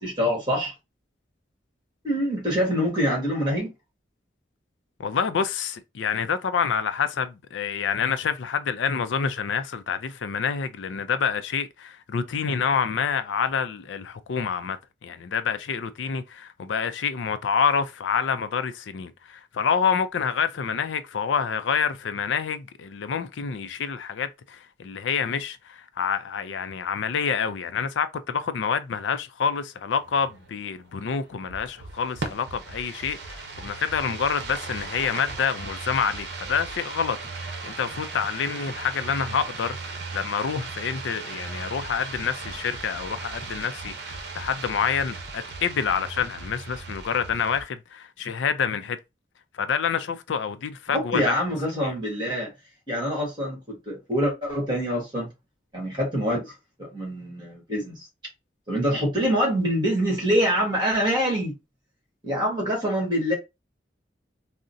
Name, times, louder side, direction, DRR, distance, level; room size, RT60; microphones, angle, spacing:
voice 1, 0.0-0.7 2.0-3.7 50.9-52.5 52.9-55.3 55.7-56.5 56.8-58.1 58.7-61.5 62.2-63.3, equal, 25° right, 1.5 m, -25 dB
voice 2, 5.0-49.0 49.5-51.4 51.8-51.9, left 6 dB, 85° left, 0.4 m, -27 dB
sound 1, 29.9-47.6, right 3 dB, 65° right, 0.7 m, -37 dB
3.7 x 2.1 x 2.6 m
head